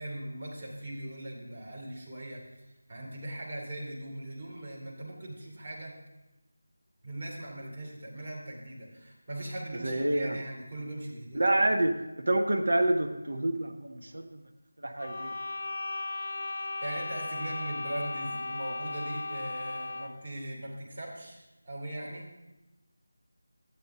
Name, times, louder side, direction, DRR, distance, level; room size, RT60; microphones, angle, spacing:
voice 1, 0.0-2.5 2.9-6.0 7.0-11.5 16.5-22.3, right 1 dB, 40° right, -4 dB, 2.9 m, -40 dB
voice 2, 9.8-10.4 11.3-14.4 14.8-15.3, right 1 dB, 60° right, 5 dB, 0.9 m, -28 dB
sound 1, 15.0-20.3, left 2 dB, 35° left, 0.7 m, -36 dB
11.5 x 8.5 x 3.7 m, 1.0 s
figure-of-eight pair, 165°, 0 cm